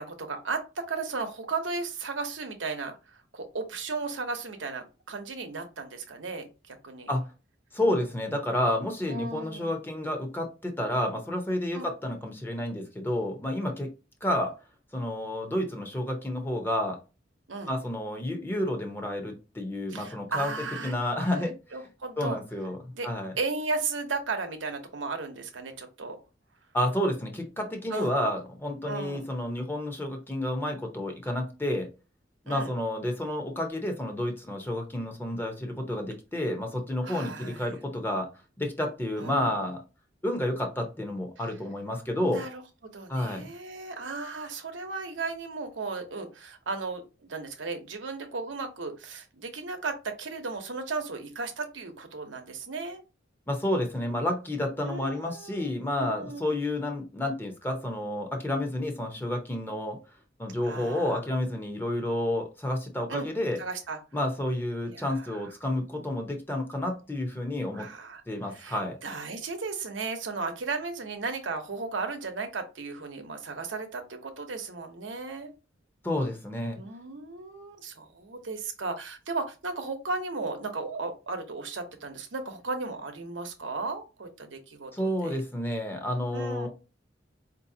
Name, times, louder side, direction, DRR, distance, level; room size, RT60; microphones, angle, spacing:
voice 1, 0.0-7.1 9.1-9.8 11.7-11.9 12.2-12.3 17.5-17.7 19.9-22.4 22.9-23.1 23.4-26.2 27.9-28.1 28.8-29.2 32.5-32.7 37.0-37.7 39.2-39.7 41.4-41.5 42.2-42.6 42.9-53.0 54.8-56.6 60.6-61.2 63.1-63.3 63.6-64.0 64.9-65.4 67.7-68.2 68.5-75.5 76.7-85.4 86.3-86.7, right 4 dB, 90° right, 5 dB, 0.8 m, -35 dB
voice 2, 7.7-13.9 14.2-14.5 14.9-17.0 17.7-21.5 22.2-22.8 23.0-23.3 26.7-31.9 32.4-38.3 38.6-39.8 40.2-42.4 43.1-43.5 53.5-60.0 60.4-63.6 64.1-67.9 68.3-69.0 76.0-76.8 84.9-86.7, left 1 dB, 10° left, 3 dB, 0.7 m, -30 dB
4.6 x 2.7 x 2.7 m, 0.30 s
head